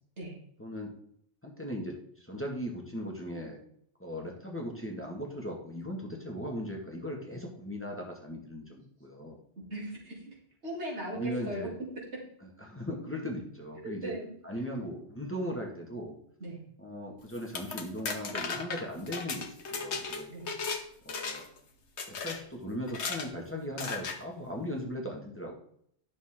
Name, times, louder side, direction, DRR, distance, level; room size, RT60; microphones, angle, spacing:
voice 1, 0.6-0.9 1.4-1.9 2.2-3.6 4.0-9.4 11.1-11.7 12.6-14.1 14.4-16.2 16.8-20.3 21.0-21.5 22.2-25.6, equal, 10° left, 0 dB, 1.8 m, -38 dB
voice 2, 9.7-10.3 10.6-11.7 13.8-14.3 16.4-16.6 20.3-20.5, equal, 85° right, -4 dB, 3.5 m, -38 dB
sound 1, 17.3-20.8 21.1-21.6 22.0-22.4 22.9-23.3 23.8-24.2, left 4 dB, 85° left, 1.4 m, -36 dB
11.0 x 6.7 x 3.7 m, 0.67 s
omnidirectional pair, 1.1 m